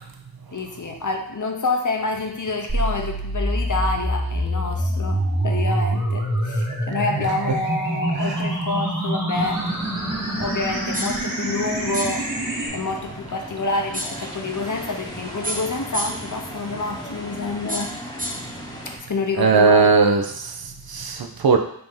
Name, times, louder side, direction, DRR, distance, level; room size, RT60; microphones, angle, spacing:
voice 1, 0.5-9.6 10.3-12.3 12.7-17.9 19.0-19.9, left 3 dB, 55° left, 3 dB, 0.7 m, -27 dB
sound 1, 2.7-12.7, right 1 dB, 50° right, 1.3 m, -25 dB
sound 2, 9.3-19.0, equal, 10° left, 0.9 m, -37 dB
sound 3, 10.9-11.3 11.9-12.3 13.9-14.3 15.4-16.3 17.7-18.5, right 1 dB, 20° right, 0.7 m, -31 dB
voice 2, 19.4-21.6, right 4 dB, 70° right, 5 dB, 0.5 m, -18 dB
4.6 x 2.7 x 3.7 m, 0.70 s
wide cardioid pair, 50°, 37 cm